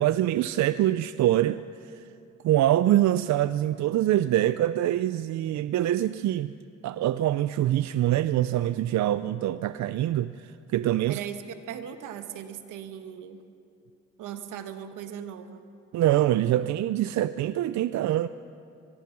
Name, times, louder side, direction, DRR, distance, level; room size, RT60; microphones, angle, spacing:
voice 1, 0.0-2.0 2.4-6.5 6.8-11.2 15.9-18.3, right 13 dB, 65° right, 14 dB, 0.5 m, -24 dB
voice 2, 11.1-13.4 14.2-15.6, right 9 dB, 90° right, 8 dB, 1.4 m, -38 dB
24.0 x 20.5 x 6.0 m, 2.6 s
cardioid pair, 90°, 30 cm